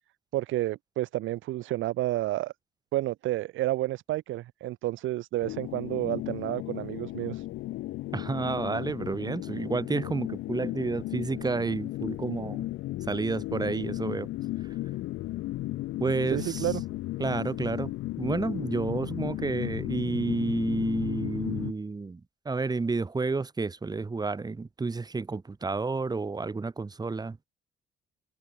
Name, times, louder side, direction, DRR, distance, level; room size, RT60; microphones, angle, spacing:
voice 1, 0.3-2.5 2.9-7.5 16.3-16.8, right 15 dB, 85° right, 0.9 m, -30 dB
sound 1, 5.4-21.7, left 16 dB, 85° left, 0.9 m, -35 dB
voice 2, 8.1-12.7 13.1-14.3 16.0-16.7 17.2-17.9 18.2-27.4, right 4 dB, 20° right, 0.9 m, -30 dB
cardioid pair, 90°, 20 cm